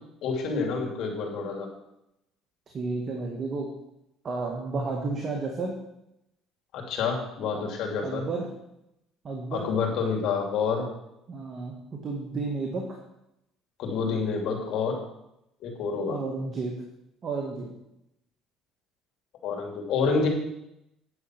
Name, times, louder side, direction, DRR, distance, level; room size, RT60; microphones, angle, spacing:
voice 1, 0.2-1.7 6.7-8.3 9.5-10.9 13.8-14.9 15.6-16.2 19.4-20.3, left 5 dB, 65° left, 1 dB, 2.9 m, -28 dB
voice 2, 2.7-3.7 4.2-5.7 7.5-7.6 8.0-8.5 9.2-9.7 11.3-11.7 12.0-12.8 16.1-16.7 17.2-17.7, right 3 dB, 40° right, 0 dB, 1.9 m, -31 dB
9.9 x 6.7 x 6.1 m, 0.84 s
cardioid pair, 105°, 0 cm